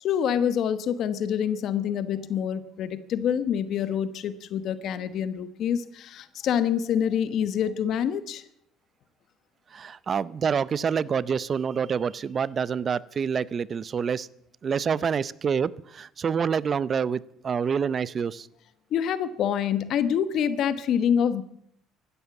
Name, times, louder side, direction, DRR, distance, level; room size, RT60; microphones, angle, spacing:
voice 1, 0.0-8.4 18.9-21.4, left 8 dB, 60° left, 13 dB, 1.1 m, -26 dB
voice 2, 9.7-14.3 14.6-18.5, right 6 dB, 35° right, 20 dB, 0.6 m, -27 dB
15.5 x 12.5 x 7.1 m, 0.71 s
cardioid pair, 110°, 0 cm